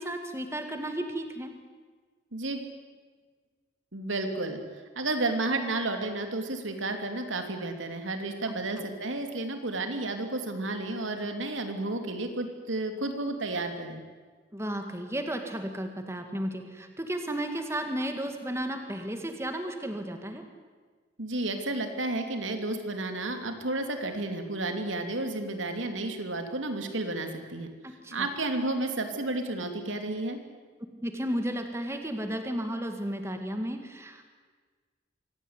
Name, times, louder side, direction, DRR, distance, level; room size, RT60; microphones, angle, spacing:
voice 1, 0.0-1.5 8.5-8.9 14.5-20.4 27.8-28.3 31.0-34.3, right 1 dB, 15° right, 5 dB, 1.9 m, -33 dB
voice 2, 3.9-4.6 4.9-14.0 21.2-27.7 28.1-30.4, right 2 dB, 85° right, 6 dB, 3.0 m, -32 dB
25.0 x 17.0 x 9.7 m, 1.5 s
head